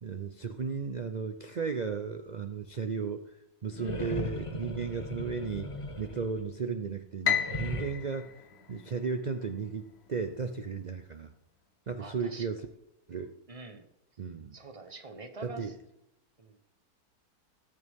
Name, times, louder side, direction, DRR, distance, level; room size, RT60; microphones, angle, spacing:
voice 1, 0.0-8.4 8.7-11.3 11.9-12.6 13.1-13.3 14.2-14.6 15.4-15.8, right 5 dB, 65° right, 8 dB, 0.4 m, -35 dB
sound 1, 3.7-6.7 7.3-7.9, left 2 dB, 25° left, 1.0 m, -38 dB
Piano, 7.2-9.5, left 8 dB, 50° left, 1.0 m, -33 dB
voice 2, 12.0-12.5 13.5-13.9 14.5-15.7 16.4-16.6, right 3 dB, 25° right, 7 dB, 1.0 m, -45 dB
19.5 x 6.8 x 3.6 m, 0.86 s
omnidirectional pair, 1.6 m